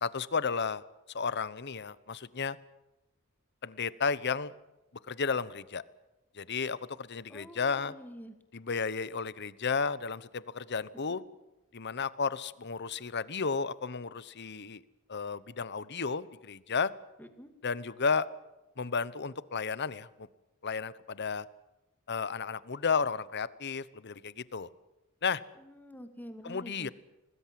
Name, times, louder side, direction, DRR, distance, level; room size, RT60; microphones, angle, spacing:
voice 1, 0.0-0.8 1.1-2.6 3.6-4.5 5.1-5.8 6.3-7.9 8.5-11.2 11.7-14.8 15.1-16.9 17.6-18.3 18.8-20.3 20.6-21.5 22.1-24.7 25.2-25.4 26.4-26.9, left 5 dB, 55° left, 18 dB, 1.0 m, -33 dB
voice 2, 7.3-8.3 11.1-11.2 17.2-17.5 25.6-26.9, equal, 10° left, 8 dB, 2.3 m, -47 dB
25.5 x 19.5 x 7.7 m, 1.0 s
head